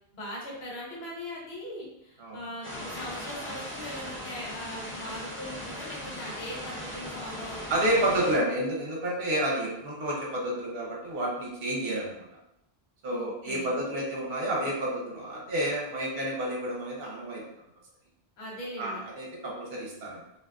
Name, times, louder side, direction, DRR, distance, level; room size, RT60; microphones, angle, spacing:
voice 1, 0.1-8.3 13.1-13.7 18.4-19.0, equal, 80° left, -4 dB, 1.1 m, -40 dB
sound 1, 2.6-8.4, equal, 20° left, 0.4 m, -38 dB
voice 2, 7.7-12.3 13.0-17.4 18.8-20.2, right 1 dB, 70° right, -3 dB, 0.9 m, -30 dB
2.5 x 2.4 x 2.2 m, 0.83 s
omnidirectional pair, 1.0 m